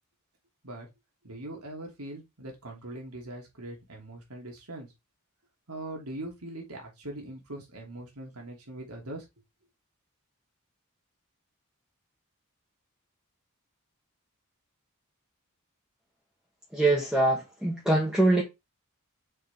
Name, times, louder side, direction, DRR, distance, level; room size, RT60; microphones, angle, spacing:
voice 1, 1.2-4.9 5.7-9.3, right 1 dB, 85° right, 2.9 m, -41 dB
voice 2, 16.7-18.4, right 2 dB, 5° right, 1.6 m, -23 dB
6.5 x 5.1 x 3.6 m
head